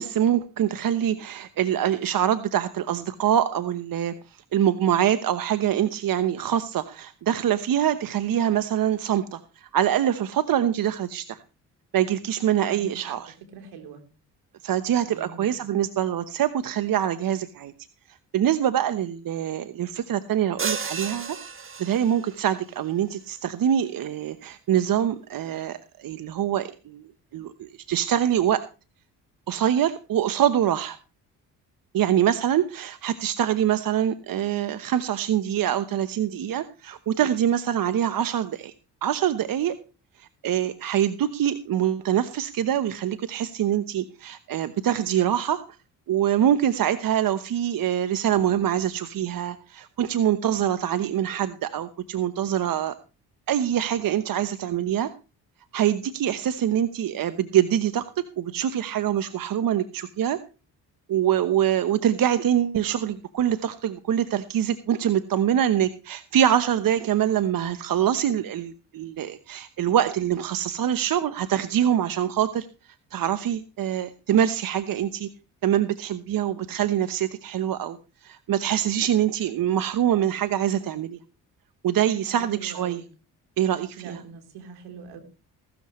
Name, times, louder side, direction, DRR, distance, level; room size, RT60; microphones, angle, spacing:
voice 1, 0.0-11.4 11.9-13.3 14.6-17.7 18.1-21.4 21.8-28.6 29.5-31.0 31.9-38.7 39.0-39.8 40.2-45.8 46.1-53.0 53.5-55.1 55.7-60.4 61.1-75.3 75.6-81.2 81.8-83.0 83.6-84.2, right 10 dB, 60° right, 11 dB, 1.0 m, -24 dB
voice 2, 12.6-13.2 13.5-14.0 15.0-15.5 82.4-83.1 84.0-85.2, right 5 dB, 80° right, 4 dB, 3.7 m, -42 dB
sound 1, 20.6-22.4, right 5 dB, 30° right, 1.4 m, -32 dB
16.5 x 13.0 x 3.2 m, 0.33 s
supercardioid pair, 65°, 39 cm